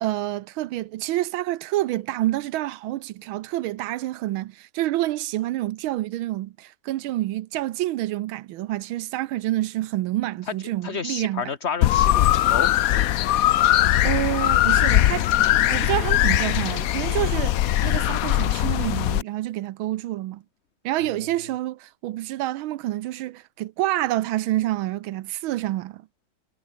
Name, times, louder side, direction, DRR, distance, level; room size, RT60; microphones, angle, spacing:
voice 1, 0.0-11.5 14.0-15.3 15.7-20.4 20.8-26.1, right 15 dB, 80° right, 1.5 m, -28 dB
voice 2, 10.8-13.3 21.0-21.1, left 6 dB, 35° left, 1.7 m, -31 dB
sound 1, 11.8-19.2, left 13 dB, 85° left, 0.7 m, -20 dB
omnidirectional pair, 2.2 m